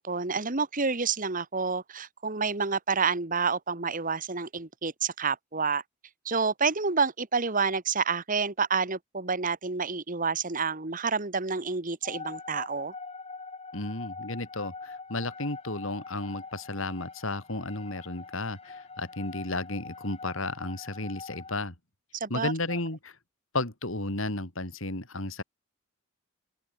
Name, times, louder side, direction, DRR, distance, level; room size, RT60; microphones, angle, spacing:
voice 1, 0.0-5.8 6.2-12.9 22.2-22.8, right 5 dB, 40° right, 1.7 m, -29 dB
sound 1, 12.0-21.5, left 4 dB, 30° left, 5.7 m, -43 dB
voice 2, 13.7-21.7 22.3-23.1 23.5-25.4, left 2 dB, 65° left, 3.5 m, -33 dB
open air
head